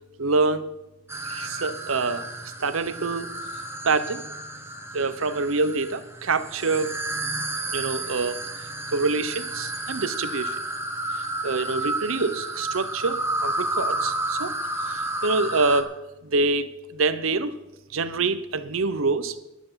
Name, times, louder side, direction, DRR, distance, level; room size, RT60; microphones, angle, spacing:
voice 1, 0.2-0.7 1.2-2.3 2.6-3.3 3.8-4.2 4.9-7.0 7.7-8.4 8.9-10.6 11.1-14.5 14.8-15.9 16.3-17.5 17.9-19.3, right 3 dB, 85° right, 14 dB, 0.9 m, -26 dB
sound 1, 1.1-15.8, right 2 dB, 15° right, 1.1 m, -31 dB
12.5 x 11.0 x 5.7 m, 0.96 s
head